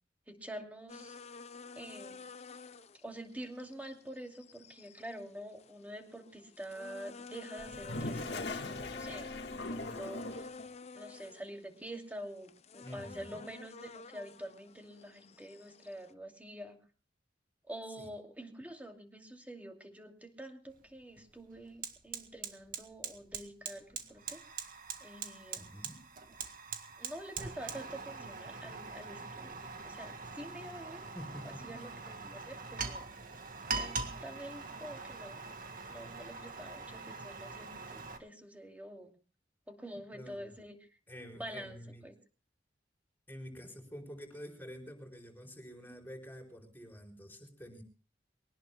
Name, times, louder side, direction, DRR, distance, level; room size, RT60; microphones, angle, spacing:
voice 1, 0.3-1.2 1.7-2.2 3.0-9.3 9.6-10.5 10.9-16.8 17.7-24.4 25.0-25.7 27.0-29.6 29.8-31.1 31.4-33.1 33.7-35.4 35.9-39.2 39.7-40.9 41.4-42.1, right 1 dB, 10° right, 3 dB, 2.6 m, -47 dB
sound 1, 0.9-16.1, left 4 dB, 40° left, 0.6 m, -50 dB
Toilet flush, 7.6-10.7, left 2 dB, 65° left, 1.8 m, -40 dB
voice 2, 12.8-13.4 18.0-18.1 25.6-26.0 31.1-31.8 40.1-40.6 41.1-42.0 43.3-47.8, equal, 10° left, 2 dB, 4.4 m, -48 dB
Fire, 20.7-20.8 21.2-38.2, right 4 dB, 50° right, 1.8 m, -43 dB
23.5 x 18.5 x 2.2 m, 0.36 s
head